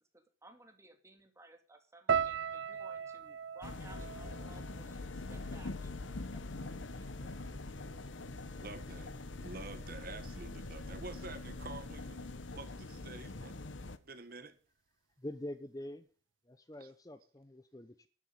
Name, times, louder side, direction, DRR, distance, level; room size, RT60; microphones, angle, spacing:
voice 1, 0.0-7.4, right 2 dB, 15° right, 2.3 m, -59 dB
sound 1, 2.1-6.3 6.5-7.3 7.9-8.1, right 7 dB, 80° right, 0.6 m, -39 dB
sound 2, 3.6-14.0, left 2 dB, 85° left, 1.1 m, -43 dB
voice 2, 8.5-9.1 9.4-12.2 12.5-13.6 14.0-14.6 16.8-16.9, right 3 dB, 50° right, 1.5 m, -48 dB
voice 3, 15.2-16.1 16.4-18.1, left 1 dB, 20° left, 0.8 m, -45 dB
12.5 x 7.3 x 9.9 m
head